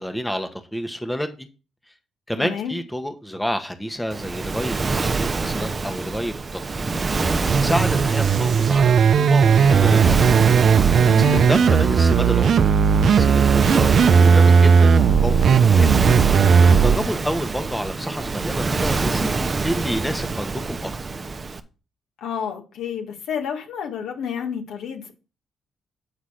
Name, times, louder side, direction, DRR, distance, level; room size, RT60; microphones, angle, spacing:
voice 1, 0.0-1.5 2.3-6.8 7.6-10.2 11.5-15.9 16.8-20.9, equal, 5° left, 1.2 m, -29 dB
voice 2, 2.4-2.8 11.0-11.5 22.2-25.1, left 7 dB, 80° left, 1.9 m, -30 dB
Waves surf, 4.1-21.6, right 3 dB, 30° right, 0.9 m, -26 dB
sound 1, 7.5-17.0, right 6 dB, 60° right, 0.6 m, -16 dB
8.7 x 4.0 x 6.4 m
cardioid pair, 90°, 0 cm